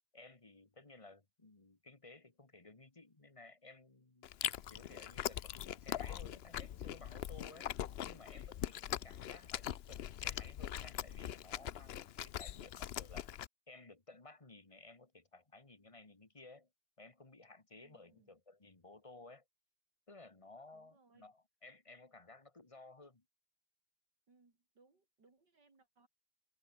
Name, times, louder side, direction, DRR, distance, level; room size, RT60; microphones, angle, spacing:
voice 1, 0.1-4.3 4.7-7.7 8.1-13.3 13.7-16.7 17.0-19.4 20.1-23.2, left 3 dB, 20° left, 1.6 m, -57 dB
Chewing mastication, 4.2-13.5, left 11 dB, 90° left, 0.5 m, -42 dB
voice 2, 8.8-9.3 17.8-18.3 20.7-21.3 24.3-26.1, right 3 dB, 80° right, 4.9 m, -70 dB
omnidirectional pair, 1.8 m